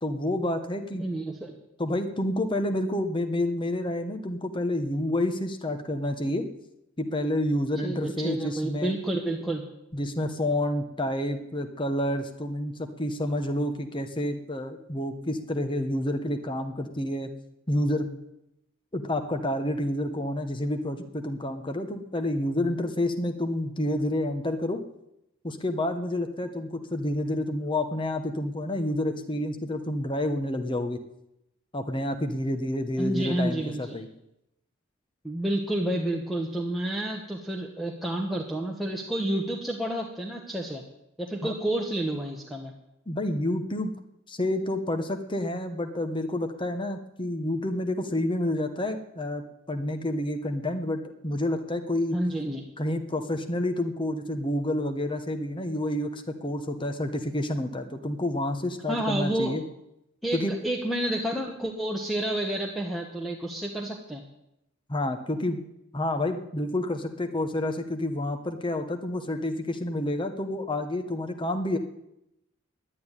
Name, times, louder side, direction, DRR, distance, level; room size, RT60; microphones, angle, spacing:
voice 1, 0.0-1.1 1.8-6.5 7.0-8.9 9.9-17.3 17.7-18.1 18.9-24.8 25.4-31.0 31.7-34.1 41.4-41.5 43.1-43.9 44.3-52.2 52.8-59.6 60.3-60.6 64.9-65.6 65.9-71.8, left 1 dB, 25° left, 6 dB, 1.1 m, -29 dB
voice 2, 0.9-1.5 7.8-9.6 33.0-34.0 35.2-40.8 41.2-42.7 52.1-52.7 58.9-59.6 60.2-64.2, right 1 dB, ahead, -2 dB, 1.2 m, -30 dB
11.0 x 9.5 x 9.8 m, 0.85 s
head